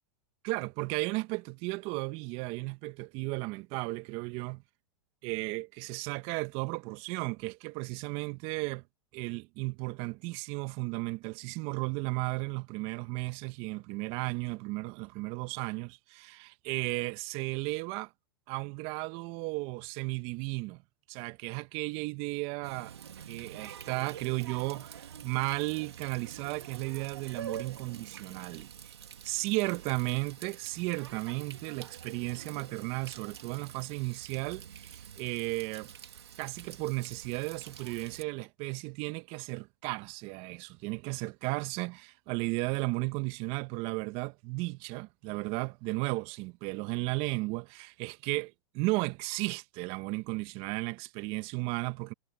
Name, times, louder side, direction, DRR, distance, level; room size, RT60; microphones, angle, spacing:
voice 1, 0.4-4.6 5.2-8.8 9.1-18.1 18.5-20.8 21.1-22.9 23.3-28.9 29.2-35.9 36.4-48.5 48.7-52.1, right 25 dB, 45° right, 1.5 m, -34 dB
Water tap faucet, 22.6-38.2, right 8 dB, 85° right, 2.9 m, -47 dB
hypercardioid pair, 110°, 13 cm